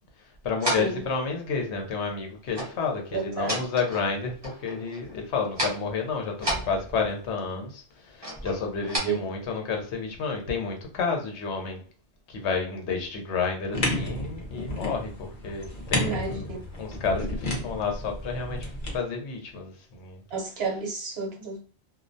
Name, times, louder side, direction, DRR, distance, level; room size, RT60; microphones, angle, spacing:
voice 1, 0.4-11.8 12.3-16.5 16.8-20.2, left 5 dB, 75° left, 3 dB, 0.9 m, -30 dB
sound 1, 0.6-1.1 2.5-2.8 3.2-4.2 4.4-5.1 5.5-5.9 6.4-7.2 8.2-9.0, right 1 dB, 25° right, 0.7 m, -32 dB
voice 2, 3.1-3.5 9.0-9.2 15.9-16.6 20.3-21.6, right 5 dB, 65° right, 0 dB, 0.9 m, -31 dB
sound 2, 13.7-19.0, left 1 dB, 50° left, 0.8 m, -32 dB
2.3 x 2.1 x 2.6 m, 0.43 s
omnidirectional pair, 1.2 m